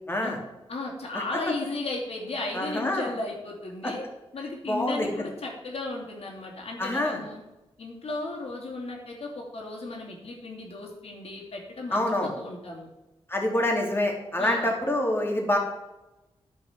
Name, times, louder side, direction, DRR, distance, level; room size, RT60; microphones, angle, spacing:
voice 1, 0.1-0.4 1.1-1.2 2.5-3.1 3.8-3.9 4.7-5.1 6.8-7.2 11.9-12.3 13.3-15.6, left 1 dB, 20° left, 1 dB, 2.7 m, -26 dB
voice 2, 0.7-4.0 4.3-7.4 7.8-12.9 14.4-14.7, left 2 dB, 65° left, -1 dB, 2.9 m, -35 dB
10.0 x 5.5 x 6.0 m, 1.0 s
cardioid pair, 60°, 11 cm